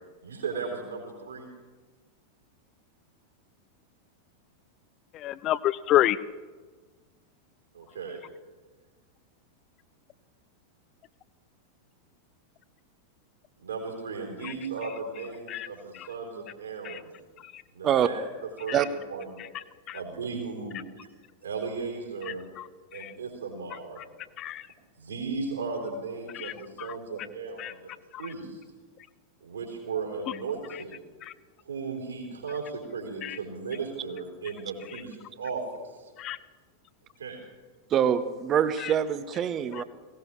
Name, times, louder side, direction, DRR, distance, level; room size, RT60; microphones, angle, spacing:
voice 1, 0.2-1.5 7.7-8.2 13.6-17.1 17.7-18.3 18.6-19.3 19.9-20.8 21.4-22.4 22.9-24.0 24.9-27.9 28.2-28.6 29.4-31.0 31.6-36.1 37.2-37.4, right 4 dB, 70° right, 0 dB, 3.6 m, -36 dB
voice 2, 5.1-6.2 15.5-15.7 16.8-17.0 19.9-20.0 23.0-23.1 24.4-24.6 26.4-26.5 26.8-26.9 27.6-27.7 33.2-33.4 36.2-36.4, left 14 dB, 35° left, 18 dB, 0.4 m, -27 dB
voice 3, 37.9-39.8, right 9 dB, 30° right, 13 dB, 0.8 m, -24 dB
18.0 x 17.0 x 3.2 m, 1.3 s
figure-of-eight pair, 90°, 0 cm